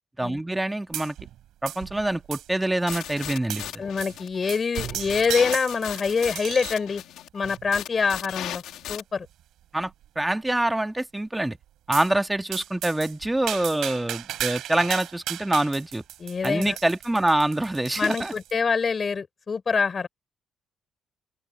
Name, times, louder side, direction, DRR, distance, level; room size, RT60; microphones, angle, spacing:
voice 1, 0.2-1.2 1.6-3.8 9.7-11.6 11.9-16.0 16.4-18.3, right 1 dB, 10° right, 1.9 m, -25 dB
sound 1, 0.9-1.4 1.7-2.6 2.9-3.1 3.5-3.7 4.0-4.2 4.5-6.8 7.4-7.8 8.4-8.5 8.9-9.0 9.3-9.4 9.8-10.3 11.9-12.1 12.5-18.5, right 12 dB, 80° right, 5.5 m, -35 dB
sound 2, 2.9-9.0, left 12 dB, 85° left, 2.9 m, -37 dB
voice 2, 3.8-7.0 7.3-8.6 8.9-9.3 16.2-16.8 18.0-20.1, left 5 dB, 40° left, 5.1 m, -25 dB
open air
cardioid pair, 90°, 0 cm